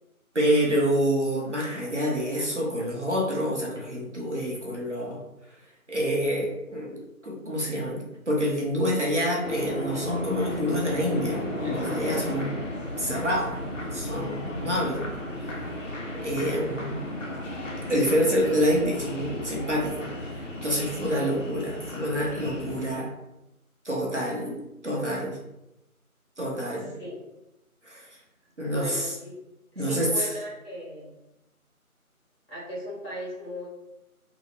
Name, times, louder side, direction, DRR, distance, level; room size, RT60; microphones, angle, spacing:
voice 1, 0.3-5.2 5.9-12.6 13.0-13.5 13.9-15.1 16.1-17.1 17.9-20.1 20.3-23.1 23.8-24.6 24.8-25.4 26.4-26.9 27.9-28.1 28.6-29.0 29.8-30.3, equal, 55° right, -3 dB, 0.7 m, -27 dB
sound 1, 9.4-22.9, left 1 dB, 60° left, 0.6 m, -34 dB
voice 2, 21.0-21.4 26.8-27.2 28.6-29.4 29.7-31.1 32.5-33.7, equal, 40° left, -6 dB, 1.4 m, -37 dB
2.9 x 2.0 x 3.1 m, 0.91 s
figure-of-eight pair, 170°, 44 cm